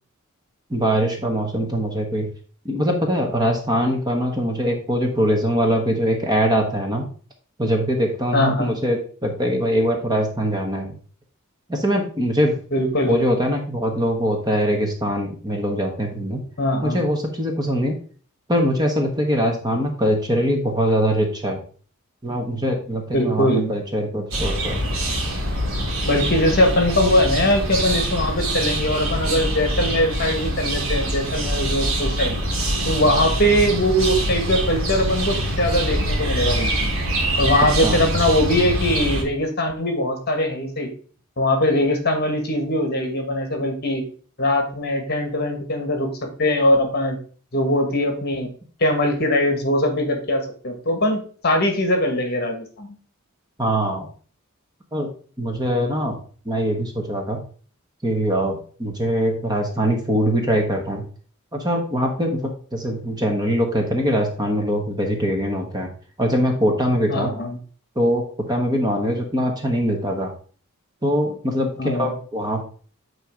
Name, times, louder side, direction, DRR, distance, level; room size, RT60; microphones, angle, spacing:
voice 1, 0.7-2.3 2.6-7.1 7.6-11.0 11.7-12.6 13.1-16.4 16.8-18.0 18.5-21.6 22.2-24.8 37.8-38.0 53.6-54.1 54.9-55.1 55.4-56.1 56.4-57.4 58.0-61.0 61.5-65.9 66.2-67.3 67.9-70.3 71.0-72.6, equal, 20° right, 2 dB, 1.2 m, -22 dB
voice 2, 8.3-8.8 12.7-13.3 16.6-17.0 23.1-23.7 26.1-32.4 32.9-36.9 37.4-40.9 41.4-44.0 44.4-46.1 46.4-47.2 47.5-48.5 48.8-52.9 67.1-67.6 71.8-72.1, left 1 dB, 45° left, 5 dB, 1.4 m, -21 dB
sound 1, 24.3-39.2, right 1 dB, 75° right, 1.9 m, -24 dB
8.9 x 3.1 x 5.0 m, 0.42 s
head